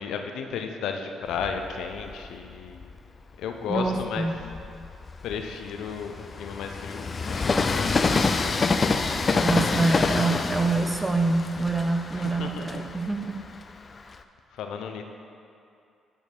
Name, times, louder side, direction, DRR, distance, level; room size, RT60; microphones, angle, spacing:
voice 1, 0.0-2.9 3.4-4.3 5.2-8.8 9.1-10.1 12.1-12.8 14.5-15.0, left 6 dB, 80° left, 5 dB, 0.6 m, -34 dB
Train, 1.3-3.0 3.6-14.2, left 4 dB, 35° left, 0.4 m, -28 dB
voice 2, 3.7-4.3 9.4-13.4, right 3 dB, 20° right, 5 dB, 0.7 m, -26 dB
8.9 x 5.2 x 4.6 m, 2.5 s
cardioid pair, 90°, 0 cm